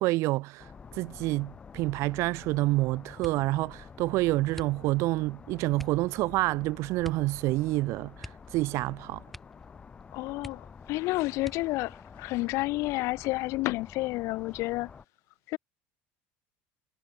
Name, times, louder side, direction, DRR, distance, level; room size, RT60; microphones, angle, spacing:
voice 1, 0.0-9.2, right 20 dB, 50° right, 0.4 m, -28 dB
sound 1, 0.6-15.1, left 5 dB, 20° left, 3.4 m, -49 dB
sound 2, 3.2-3.6 4.5-5.2 5.7-6.1 7.0-7.4 7.6-7.7 8.2-8.9 9.3-9.7 10.0-10.1 10.4-10.9 11.4-11.9 12.7-13.3 13.7-14.0, left 1 dB, ahead, 0.7 m, -47 dB
voice 2, 10.1-14.9 15.5-15.6, left 21 dB, 55° left, 0.4 m, -30 dB
cardioid pair, 155°, 6 cm